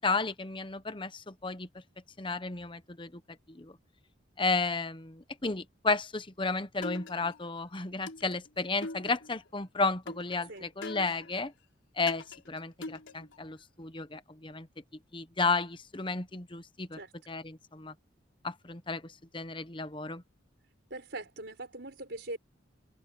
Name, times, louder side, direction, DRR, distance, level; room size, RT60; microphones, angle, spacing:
voice 1, 0.0-1.7 2.2-3.2 3.5-3.8 4.4-11.5 12.0-14.7 15.1-17.0 17.3-17.9 18.4-20.2, left 3 dB, 25° left, 1.0 m, -33 dB
sound 1, 6.8-7.6 8.1-9.5 10.1-11.5 12.1-13.5, left 2 dB, 70° left, 4.3 m, -43 dB
voice 2, 20.9-22.4, right 2 dB, 60° right, 5.7 m, -41 dB
head